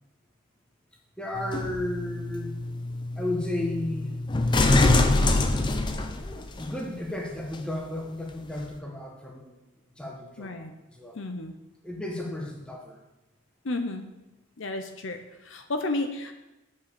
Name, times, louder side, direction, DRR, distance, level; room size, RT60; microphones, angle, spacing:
voice 1, 1.2-2.5 3.2-4.1 6.6-9.6 10.0-11.2 11.8-13.0, left 1 dB, 5° left, -1 dB, 1.2 m, -33 dB
sound 1, 1.4-6.7 7.5-7.6, left 2 dB, 20° left, 0.5 m, -25 dB
voice 2, 10.4-10.7 11.2-11.5 13.6-14.1 14.6-15.2 15.4-16.3, left 2 dB, 60° left, 6 dB, 0.7 m, -32 dB
7.7 x 5.6 x 6.7 m, 1.0 s
head